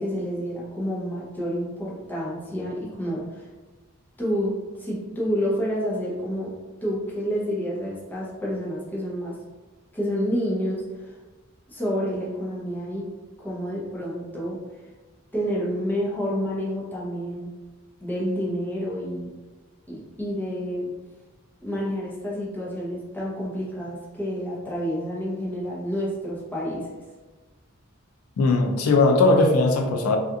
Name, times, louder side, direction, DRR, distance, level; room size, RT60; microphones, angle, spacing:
voice 1, 0.0-3.5 4.2-4.5 4.8-6.5 6.8-9.3 9.9-11.1 11.7-13.0 13.4-14.6 15.3-17.5 18.0-19.3 19.9-20.9 21.6-26.8, equal, 10° left, -6 dB, 0.6 m, -29 dB
voice 2, 28.4-30.2, left 2 dB, 90° left, 4 dB, 0.3 m, -19 dB
2.8 x 2.3 x 2.4 m, 1.2 s
head